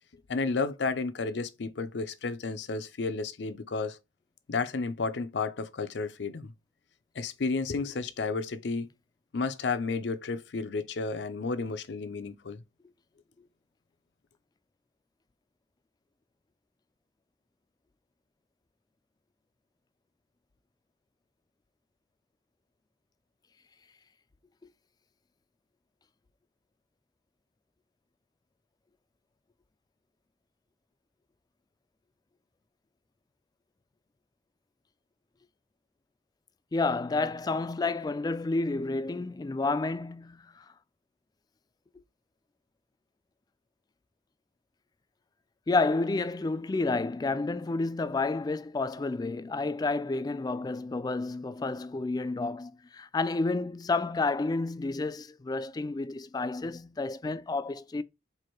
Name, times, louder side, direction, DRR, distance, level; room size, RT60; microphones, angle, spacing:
voice 1, 0.3-4.0 4.5-6.5 7.2-8.9 9.3-12.6, left 4 dB, 80° left, 0.6 m, -32 dB
voice 2, 36.7-40.7 45.7-58.0, left 3 dB, 20° left, 0.3 m, -30 dB
4.7 x 2.6 x 4.4 m
head